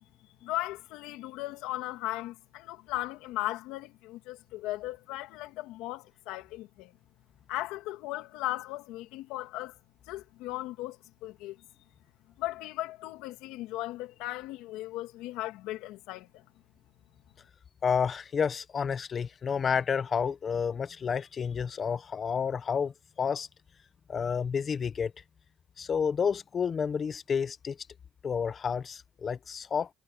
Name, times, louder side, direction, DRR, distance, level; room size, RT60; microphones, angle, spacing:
voice 1, 0.4-6.9 7.5-9.8 10.1-11.6 12.4-16.4, left 17 dB, 85° left, 2.6 m, -37 dB
voice 2, 17.8-22.9 23.2-23.5 24.1-25.1 25.8-27.8 28.2-29.9, left 6 dB, 45° left, 1.2 m, -30 dB
cardioid pair, 90°, 0 cm